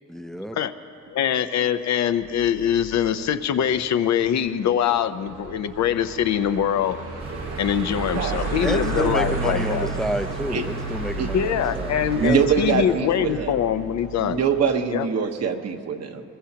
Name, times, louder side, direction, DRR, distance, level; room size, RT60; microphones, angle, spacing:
voice 1, 0.1-0.6 8.6-13.5, equal, ahead, 8 dB, 0.6 m, -30 dB
voice 2, 1.1-7.0 7.6-9.9 11.3-14.4 14.9-15.1, left 9 dB, 65° left, 10 dB, 0.7 m, -23 dB
sound 1, 2.2-14.4, right 3 dB, 90° right, 4.6 m, -32 dB
sound 2, 7.2-13.0, right 1 dB, 20° right, 0.9 m, -39 dB
voice 3, 12.2-13.6 14.2-16.2, right 6 dB, 55° right, 5 dB, 1.2 m, -23 dB
21.5 x 21.5 x 2.9 m, 2.5 s
cardioid pair, 90°, 30 cm